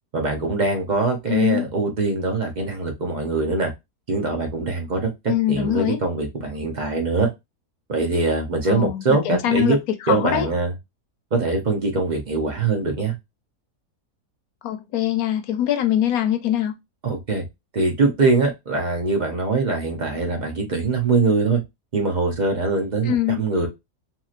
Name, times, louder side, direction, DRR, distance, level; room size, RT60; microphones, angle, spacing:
voice 1, 0.1-3.7 4.1-7.3 7.9-9.8 10.1-10.7 11.3-13.1 17.0-17.4 17.7-21.6 21.9-23.7, right 3 dB, 45° right, 0.6 m, -22 dB
voice 2, 1.3-1.7 5.3-6.0 8.7-9.8 10.1-10.5 14.6-16.7 23.1-23.4, left 11 dB, 70° left, 1.0 m, -22 dB
2.9 x 2.8 x 2.4 m
omnidirectional pair, 1.7 m